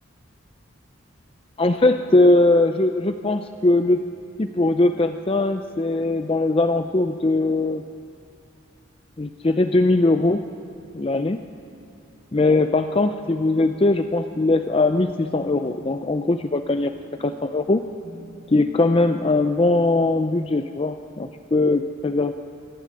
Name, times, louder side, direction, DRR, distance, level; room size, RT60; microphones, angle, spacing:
voice 1, 1.6-4.0 4.4-7.8 9.2-10.5 10.9-11.4 12.3-16.9 17.2-17.8 18.5-22.3, left 2 dB, 30° left, 7 dB, 0.5 m, -20 dB
sound 1, 15.1-19.4, equal, 35° right, 0.9 m, -45 dB
22.5 x 14.5 x 10.0 m, 2.5 s
head